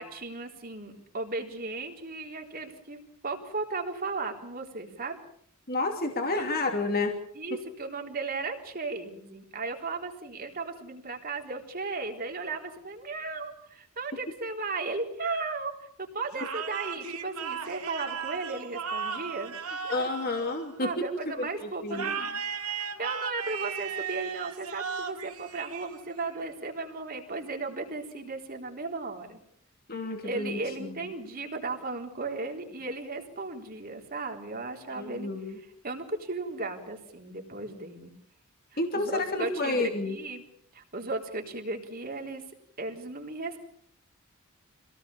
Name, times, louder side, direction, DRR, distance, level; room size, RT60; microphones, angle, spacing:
voice 1, 0.0-5.2 6.2-6.5 7.3-20.1 20.8-22.4 22.8-29.4 30.2-38.1 38.7-40.4 40.7-42.4 42.8-43.6, right 3 dB, 40° right, 2 dB, 4.0 m, -36 dB
voice 2, 5.7-7.2 19.9-21.0 21.4-22.1 29.9-30.6 30.9-31.1 34.9-35.6 38.8-40.2, left 2 dB, 45° left, 3 dB, 2.8 m, -30 dB
sound 1, 16.3-21.2 21.9-26.3, right 6 dB, 80° right, 2.9 m, -36 dB
26.5 x 18.0 x 7.2 m, 0.68 s
head